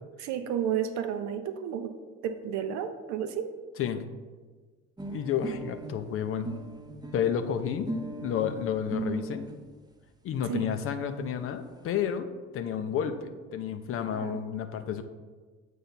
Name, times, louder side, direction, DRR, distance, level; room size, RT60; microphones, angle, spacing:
voice 1, 0.2-1.9 2.2-3.5 10.5-10.7 14.1-14.4, right 9 dB, 50° right, 8 dB, 0.7 m, -32 dB
sound 1, 5.0-9.6 10.4-10.5 10.7-10.8 11.1-11.2 11.4-12.0, right 2 dB, 10° right, 0.7 m, -38 dB
voice 2, 5.1-6.5 7.1-7.9 8.2-9.4 10.2-12.3 12.5-15.0, left 8 dB, 40° left, 8 dB, 0.5 m, -31 dB
7.6 x 2.7 x 5.9 m, 1.4 s
figure-of-eight pair, 55°, 36 cm